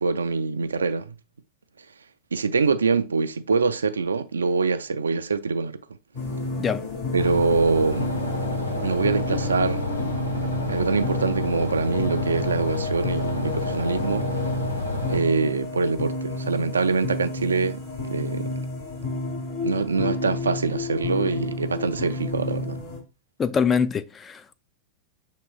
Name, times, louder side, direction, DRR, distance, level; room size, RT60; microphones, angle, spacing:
voice 1, 0.0-1.1 2.3-5.8 7.1-8.1 8.8-9.8 10.7-14.3 15.1-18.6 19.6-22.8, right 4 dB, 75° right, 0.3 m, -24 dB
sound 1, 6.1-23.0, left 3 dB, 60° left, 2.0 m, -31 dB
sound 2, 7.2-15.2, left 1 dB, 85° left, 0.7 m, -29 dB
voice 2, 23.4-24.5, left 6 dB, 20° left, 0.3 m, -24 dB
7.1 x 2.9 x 2.3 m
figure-of-eight pair, 90°, 0 cm